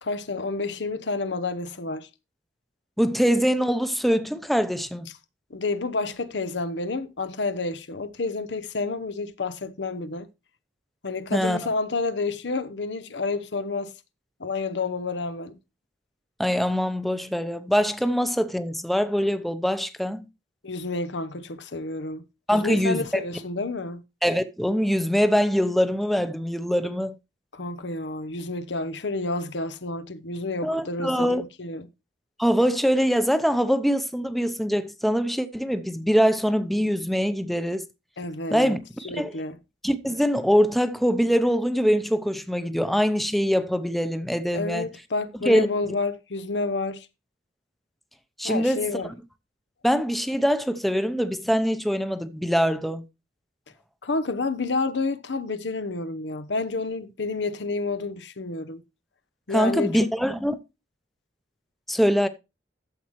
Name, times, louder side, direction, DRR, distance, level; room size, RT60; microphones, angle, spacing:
voice 1, 0.0-2.1 5.5-10.3 11.0-13.9 14.4-15.5 20.6-22.2 22.5-24.0 27.5-31.9 38.2-38.8 39.0-39.6 44.5-47.1 48.4-49.1 54.0-58.8 59.5-60.1, left 3 dB, 75° left, 0.9 m, -29 dB
voice 2, 3.0-5.1 11.3-11.6 16.4-20.2 22.5-23.1 24.2-27.1 30.6-31.4 32.4-37.8 38.5-39.3 39.8-44.9 45.5-45.7 48.4-48.8 49.8-53.0 59.5-60.6 61.9-62.3, equal, ahead, 0.7 m, -23 dB
12.5 x 7.3 x 3.1 m
head